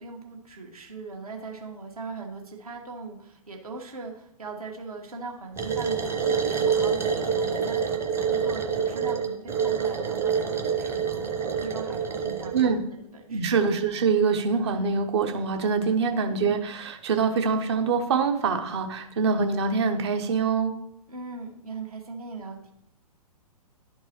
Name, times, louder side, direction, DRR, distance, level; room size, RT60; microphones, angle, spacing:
voice 1, 0.0-11.3 11.6-12.8 13.1-13.4 21.1-22.7, right 4 dB, 65° right, 0 dB, 1.7 m, -40 dB
sound 1, 5.6-12.7, right 6 dB, 10° right, 0.8 m, -27 dB
voice 2, 13.3-20.7, right 5 dB, 45° right, 6 dB, 0.9 m, -24 dB
11.5 x 4.5 x 3.1 m, 0.74 s
figure-of-eight pair, 115°, 20 cm